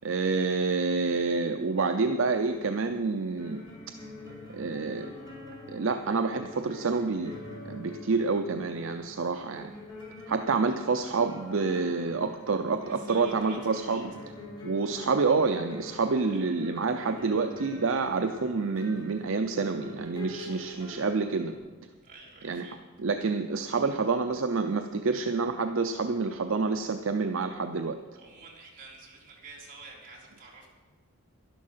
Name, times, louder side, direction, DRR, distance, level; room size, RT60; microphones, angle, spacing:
voice 1, 0.0-3.6 4.5-5.1 5.7-7.3 7.6-9.7 10.3-14.1 14.6-21.5 22.4-22.7 23.0-28.0, right 4 dB, 60° right, 7 dB, 0.6 m, -28 dB
sound 1, 2.4-21.5, left 2 dB, 20° left, 3.7 m, -45 dB
voice 2, 12.9-14.0 16.3-16.5 20.3-20.9 22.0-22.8 28.2-30.7, right 3 dB, 40° right, -4 dB, 3.5 m, -49 dB
11.5 x 11.5 x 5.7 m, 1.3 s
head